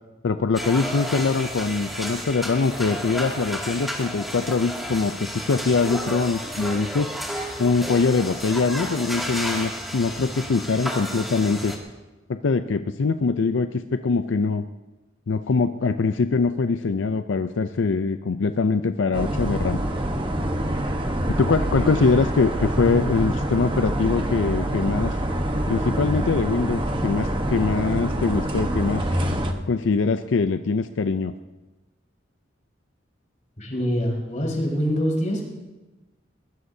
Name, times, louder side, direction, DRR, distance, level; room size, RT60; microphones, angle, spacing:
voice 1, 0.2-7.1 7.6-11.8 12.3-14.7 15.3-19.8 21.3-25.2 25.7-29.2 29.6-31.3, left 4 dB, 80° left, 10 dB, 0.5 m, -23 dB
sound 1, 0.5-11.8, equal, ahead, 2.3 m, -32 dB
sound 2, 19.1-29.5, right 1 dB, 25° right, 1.1 m, -26 dB
voice 2, 33.6-35.4, equal, 40° left, -2 dB, 4.9 m, -24 dB
22.0 x 19.5 x 2.7 m, 1.1 s
head